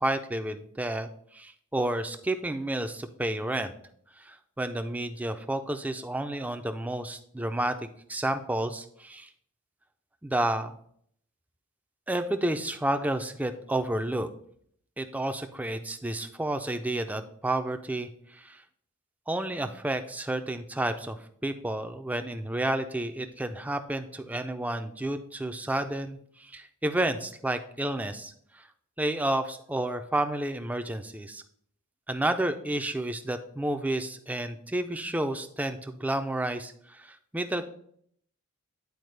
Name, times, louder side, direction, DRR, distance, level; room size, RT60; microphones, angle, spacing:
voice 1, 0.0-3.7 4.2-9.3 10.2-10.7 12.1-14.3 15.0-18.6 19.3-28.7 29.0-31.4 32.1-37.7, right 1 dB, 5° right, 8 dB, 0.4 m, -31 dB
9.3 x 4.4 x 3.2 m, 0.65 s
head